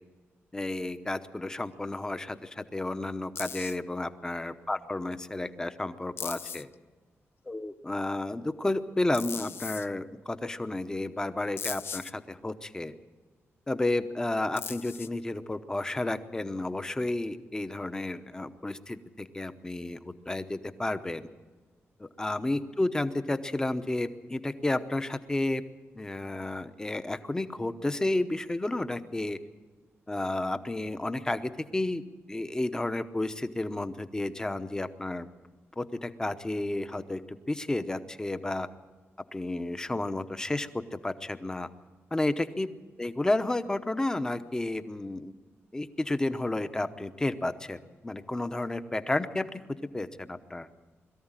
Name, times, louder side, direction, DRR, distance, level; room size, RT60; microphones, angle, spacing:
voice 1, 0.5-6.7 7.5-12.9 13.7-21.3 22.0-25.6 25.9-29.4 30.1-32.0 32.3-35.3 35.8-37.2 37.5-38.7 39.3-41.7 42.1-42.7 43.0-45.3 45.7-49.6 49.9-50.8, left 2 dB, 15° left, 10 dB, 0.9 m, -31 dB
sound 1, 3.4-3.8 5.1-5.2 6.2-6.7 9.1-9.9 11.6-12.1 14.6-15.2, left 7 dB, 55° left, 0.5 m, -38 dB
22.0 x 14.0 x 9.0 m, 1.4 s
wide cardioid pair, 145°, 5 cm